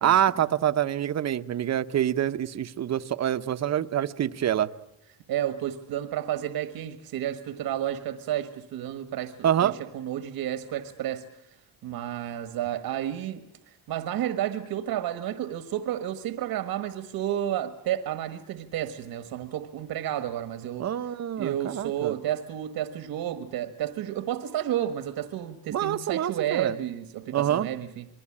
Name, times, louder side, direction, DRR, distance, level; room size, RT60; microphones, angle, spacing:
voice 1, 0.0-4.7 9.4-9.8 20.8-22.1 25.7-26.8 27.3-27.7, right 10 dB, 45° right, 1.0 m, -26 dB
voice 2, 5.3-11.6 11.8-20.9 21.4-28.1, right 11 dB, 80° right, 1.6 m, -31 dB
27.5 x 21.5 x 8.7 m
cardioid pair, 135°, 36 cm